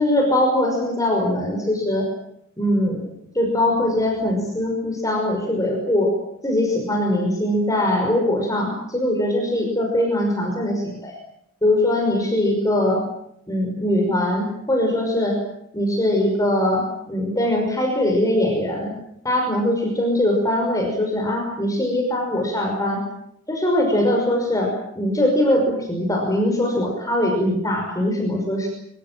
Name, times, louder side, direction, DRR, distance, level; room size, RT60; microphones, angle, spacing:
voice 1, 0.0-2.1 2.6-3.1 3.3-6.1 6.4-11.1 11.6-13.0 13.5-15.4 15.7-18.9 19.2-23.0 23.5-28.7, left 1 dB, 15° left, 1 dB, 5.7 m, -21 dB
25.5 x 24.5 x 7.6 m, 0.75 s
head